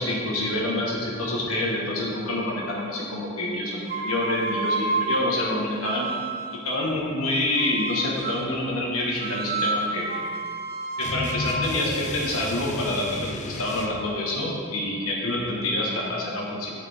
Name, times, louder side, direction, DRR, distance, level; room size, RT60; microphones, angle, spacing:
voice 1, 0.0-6.1 6.6-10.1 11.0-16.7, left 1 dB, 90° left, -3 dB, 1.4 m, -27 dB
sound 1, 3.8-6.7 7.6-8.6 9.2-13.2, right 3 dB, 50° right, 0.5 m, -30 dB
sound 2, 11.0-14.1, left 3 dB, 35° left, 0.4 m, -34 dB
8.0 x 6.7 x 3.5 m, 2.2 s
head